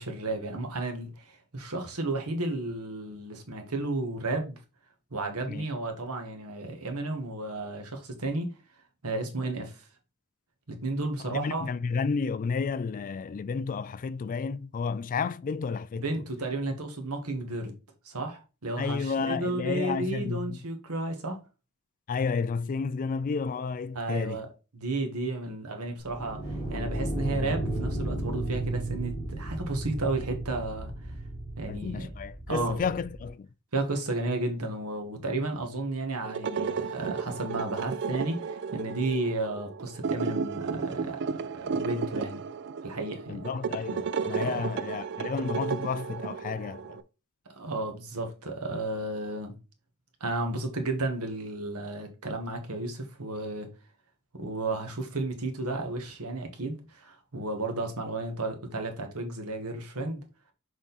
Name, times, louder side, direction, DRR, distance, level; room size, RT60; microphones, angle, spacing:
voice 1, 0.0-4.6 5.1-8.5 9.0-9.8 10.7-11.7 15.9-17.7 18.0-21.4 23.9-24.5 24.7-26.4 26.7-30.9 31.6-32.1 32.5-32.8 33.7-42.4 42.8-43.4 44.4-44.6 47.5-49.6 50.2-53.7 54.3-60.2, right 2 dB, 80° right, 1.5 m, -33 dB
voice 2, 11.2-16.1 18.8-20.6 22.1-24.4 31.7-33.5 43.3-47.0, left 5 dB, 35° left, 0.3 m, -31 dB
sound 1, 26.0-33.3, right 1 dB, 20° left, 1.8 m, -34 dB
sound 2, 36.2-47.0, right 5 dB, 55° right, 0.4 m, -33 dB
6.4 x 3.7 x 4.0 m
head